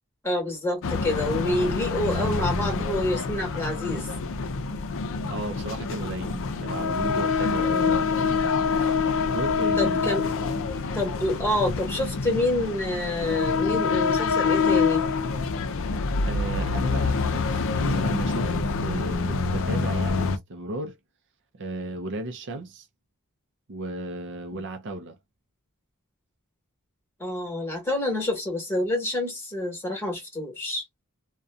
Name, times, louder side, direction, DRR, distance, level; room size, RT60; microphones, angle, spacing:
voice 1, 0.2-4.1 7.7-8.0 9.8-10.2 10.9-15.0 24.5-24.6 27.2-30.8, left 1 dB, 10° left, 1.3 m, -28 dB
sound 1, 0.8-20.4, left 4 dB, 60° left, 0.4 m, -26 dB
voice 2, 5.2-8.5 9.3-10.0 16.2-21.0 21.5-22.9 23.7-25.2, right 2 dB, 55° right, 0.5 m, -35 dB
2.6 x 2.2 x 2.3 m
head